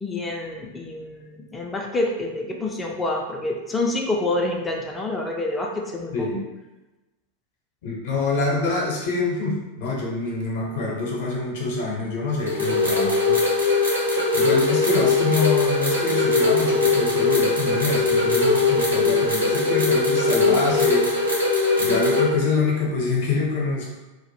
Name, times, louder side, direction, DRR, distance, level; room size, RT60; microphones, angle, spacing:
voice 1, 0.0-6.3, left 2 dB, 15° left, -1 dB, 0.3 m, -27 dB
voice 2, 7.8-13.4 14.3-21.1 21.8-24.0, left 3 dB, 50° left, -2 dB, 0.6 m, -25 dB
sound 1, 12.4-22.2, left 3 dB, 85° right, 0.9 m, -20 dB
2.1 x 2.0 x 3.0 m, 1.1 s
figure-of-eight pair, 90°, 0 cm